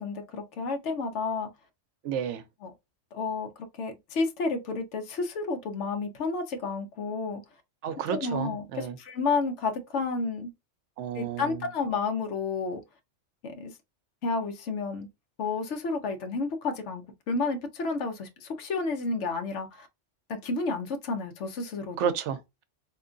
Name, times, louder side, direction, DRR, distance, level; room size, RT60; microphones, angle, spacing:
voice 1, 0.0-1.5 2.6-2.7 3.1-3.5 3.8-7.4 8.1-10.5 11.1-12.8 13.4-13.7 14.2-15.1 15.4-19.9 20.4-22.1, left 4 dB, 70° left, 1.1 m, -31 dB
voice 2, 2.0-2.4 7.8-9.0 11.0-11.6 22.0-22.6, right 8 dB, 75° right, 0.9 m, -31 dB
3.7 x 2.9 x 2.5 m
omnidirectional pair, 1.3 m